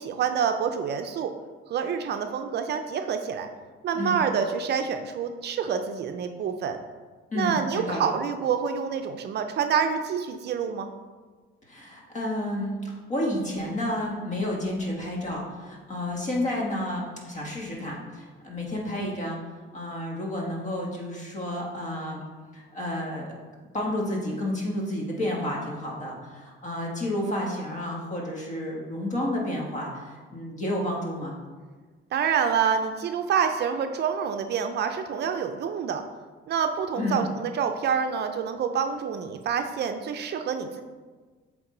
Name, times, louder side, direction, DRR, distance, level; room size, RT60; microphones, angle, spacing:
voice 1, 0.0-1.3 1.7-3.5 3.8-6.8 7.4-10.9 32.1-36.0 36.5-40.8, right 7 dB, 55° right, 7 dB, 0.5 m, -27 dB
voice 2, 7.3-8.1 11.7-19.4 19.7-22.2 22.5-23.4 23.7-31.3 37.0-37.2, left 1 dB, 35° left, -2 dB, 1.6 m, -31 dB
7.7 x 3.6 x 3.8 m, 1.4 s
cardioid pair, 120°, 21 cm